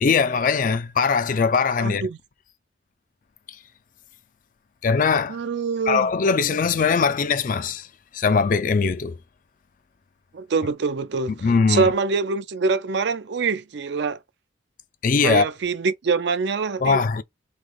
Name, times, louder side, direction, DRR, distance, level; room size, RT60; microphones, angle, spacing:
voice 1, 0.0-2.0 4.8-5.4 5.9-7.9 8.1-9.2 11.4-11.9 15.0-15.4 16.8-17.2, left 5 dB, 45° left, 0.4 m, -21 dB
voice 2, 1.8-2.2 5.3-6.1 10.3-14.2 15.2-17.0, right 4 dB, 60° right, 0.4 m, -24 dB
3.2 x 2.8 x 3.8 m
head